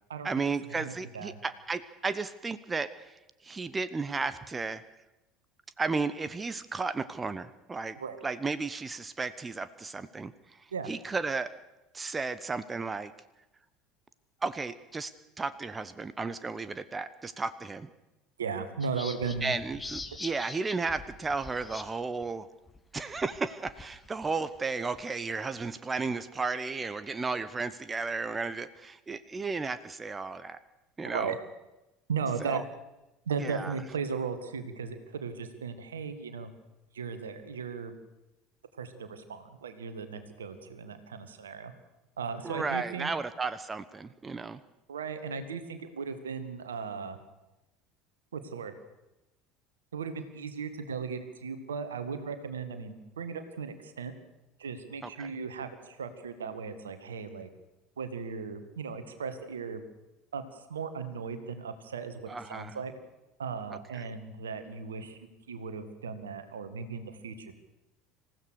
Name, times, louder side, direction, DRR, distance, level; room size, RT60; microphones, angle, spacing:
voice 1, 0.2-4.8 5.8-8.0 8.2-11.5 11.9-13.1 14.4-15.1 15.4-17.9 19.4-22.5 22.9-30.6 31.0-31.3 32.4-32.6 33.4-33.7 42.4-44.6 55.0-55.3 62.3-62.8 63.9-64.1, right 4 dB, 20° right, 15 dB, 1.0 m, -34 dB
voice 2, 0.8-1.4 8.0-8.2 10.7-10.9 18.4-19.5 31.0-31.4 32.1-32.6 33.3-36.5 36.9-37.9 38.8-41.7 42.2-43.1 44.9-47.2 48.3-48.8 49.9-54.1 54.6-57.5 58.0-59.8 60.3-62.9 63.4-67.5, right 5 dB, 75° right, 10 dB, 2.0 m, -37 dB
sound 1, 18.8-21.9 22.2-22.3 22.7-25.0, left 3 dB, 15° left, 1.5 m, -44 dB
26.5 x 16.0 x 6.6 m, 0.98 s
figure-of-eight pair, 70°, 0 cm